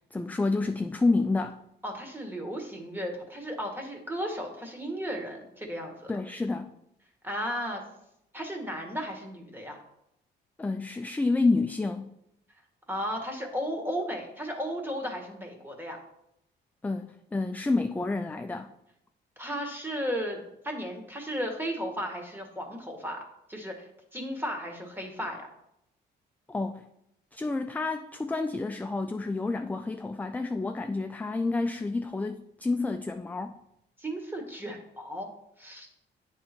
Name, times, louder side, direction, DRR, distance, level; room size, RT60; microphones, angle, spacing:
voice 1, 0.1-1.6 6.1-6.7 10.6-12.1 16.8-18.7 26.5-26.8 27.3-33.6, left 3 dB, 10° left, 7 dB, 0.3 m, -29 dB
voice 2, 1.8-6.1 7.2-7.8 8.3-9.8 12.9-16.0 19.4-23.2 23.5-25.5 34.0-35.3 35.6-35.9, equal, 10° right, 2 dB, 1.7 m, -35 dB
9.1 x 3.7 x 4.5 m, 0.81 s
cardioid pair, 90°, 20 cm